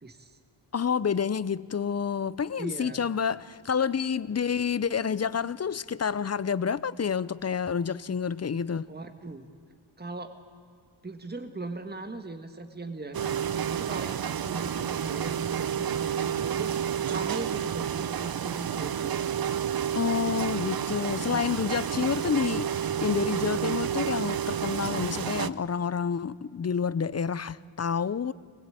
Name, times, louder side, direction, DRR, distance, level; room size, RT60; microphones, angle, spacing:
voice 1, 0.0-0.4 2.6-3.0 8.9-9.5 10.0-10.3 11.0-19.2 21.3-21.7, right 3 dB, 20° right, 1.6 m, -39 dB
voice 2, 0.7-8.9 19.9-28.3, left 7 dB, 30° left, 0.6 m, -29 dB
sound 1, 13.1-25.5, right 9 dB, 45° right, 0.7 m, -30 dB
23.5 x 20.5 x 9.1 m
wide cardioid pair, 105°, 50 cm